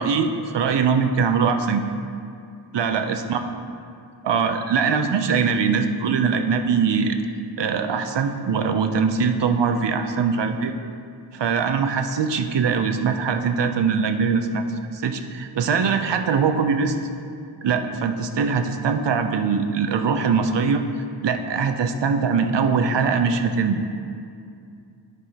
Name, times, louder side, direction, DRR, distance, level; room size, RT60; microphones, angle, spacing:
voice 1, 0.0-1.9 2.7-3.4 4.2-7.2 7.6-10.7 11.3-14.6 14.9-17.0 17.6-20.8 21.2-23.9, right 5 dB, 85° right, 7 dB, 0.6 m, -22 dB
12.5 x 4.7 x 2.8 m, 2.4 s
wide cardioid pair, 75°, 41 cm